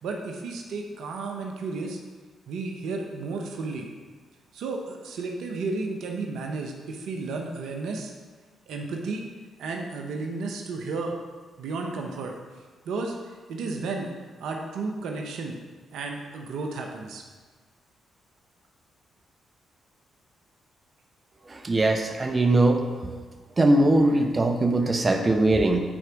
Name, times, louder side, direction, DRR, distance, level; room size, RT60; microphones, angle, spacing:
voice 1, 0.0-2.0 2.5-3.9 4.5-8.1 8.7-9.2 9.6-11.1 11.6-12.3 12.8-13.2 13.5-14.1 14.4-15.6 15.9-17.2, right 3 dB, 75° right, 2 dB, 0.9 m, -32 dB
voice 2, 21.5-23.2 23.6-25.8, right 2 dB, 35° right, 4 dB, 0.9 m, -21 dB
8.8 x 4.6 x 5.1 m, 1.4 s
hypercardioid pair, 50°, 0 cm